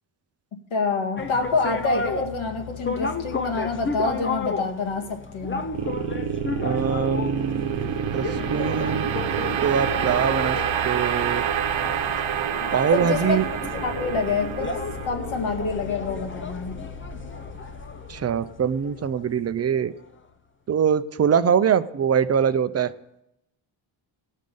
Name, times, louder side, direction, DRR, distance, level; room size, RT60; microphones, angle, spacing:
voice 1, 0.7-5.7 12.9-13.4 13.7-14.7 15.1-16.8, left 4 dB, 85° left, 4 dB, 2.0 m, -27 dB
sound 1, 1.2-19.8, left 4 dB, 25° left, 0.6 m, -33 dB
sound 2, 5.7-16.9, right 9 dB, 75° right, 0.9 m, -28 dB
sound 3, 6.3-19.6, right 1 dB, ahead, 2.8 m, -46 dB
voice 2, 6.6-9.1 9.6-10.6 10.8-11.5 12.7-13.5 18.1-19.9 20.7-22.9, right 7 dB, 35° right, 12 dB, 0.5 m, -23 dB
19.0 x 6.5 x 5.3 m, 0.84 s
wide cardioid pair, 145°, 46 cm